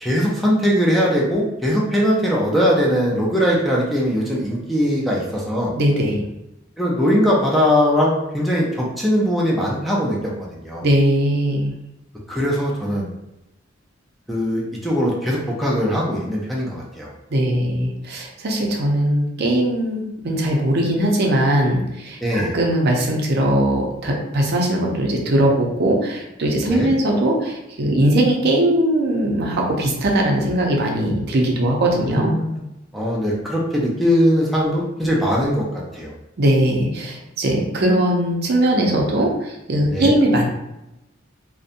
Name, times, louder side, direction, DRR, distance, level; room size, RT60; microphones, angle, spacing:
voice 1, 0.0-5.7 6.8-10.8 12.3-13.1 14.3-17.1 22.2-22.6 26.7-26.9 32.0-32.6 32.9-36.1 39.9-40.1, equal, ahead, -4 dB, 0.4 m, -20 dB
voice 2, 5.7-6.2 10.8-11.7 17.3-32.3 36.4-40.5, right 1 dB, 55° right, 0 dB, 0.5 m, -20 dB
2.6 x 2.1 x 2.5 m, 0.90 s
head